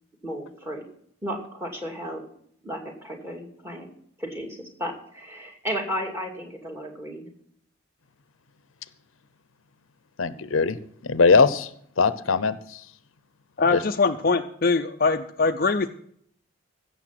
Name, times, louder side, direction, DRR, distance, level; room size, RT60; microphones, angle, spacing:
voice 1, 0.2-0.8 1.2-2.2 2.6-3.9 4.2-7.2, equal, 10° right, 2.5 m, -34 dB
voice 2, 10.2-10.8 11.0-11.7 12.0-12.8 13.7-13.8, left 4 dB, 85° left, 0.8 m, -20 dB
voice 3, 13.6-15.9, left 4 dB, 45° left, 0.5 m, -22 dB
15.5 x 7.0 x 5.9 m
head